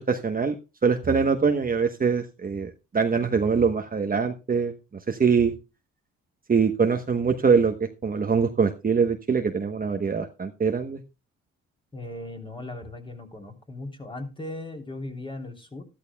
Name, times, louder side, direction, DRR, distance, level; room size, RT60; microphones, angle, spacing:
voice 1, 0.1-0.6 0.8-4.7 5.1-5.5 6.5-11.0, right 5 dB, 30° right, 5 dB, 1.1 m, -23 dB
voice 2, 11.9-15.8, left 2 dB, 15° left, 4 dB, 3.2 m, -38 dB
13.0 x 12.5 x 2.2 m, 0.29 s
cardioid pair, 90°, 30 cm